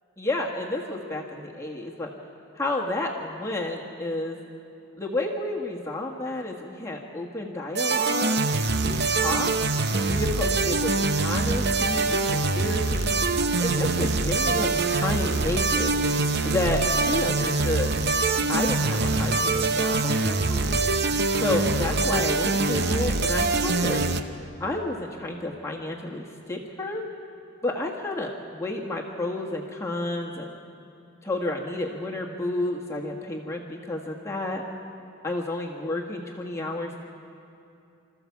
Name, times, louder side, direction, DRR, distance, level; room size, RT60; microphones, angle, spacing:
voice 1, 0.2-2.1 2.5-4.4 5.0-8.4 8.8-9.5 10.1-10.9 11.2-13.2 13.6-15.9 16.4-17.9 18.5-20.8 21.4-24.0 24.6-27.0 27.6-30.5 31.2-34.6 35.2-37.0, left 2 dB, 15° left, -1 dB, 1.5 m, -30 dB
sound 1, 7.7-24.2, right 3 dB, 50° right, 0.8 m, -24 dB
26.0 x 14.0 x 7.2 m, 2.6 s
head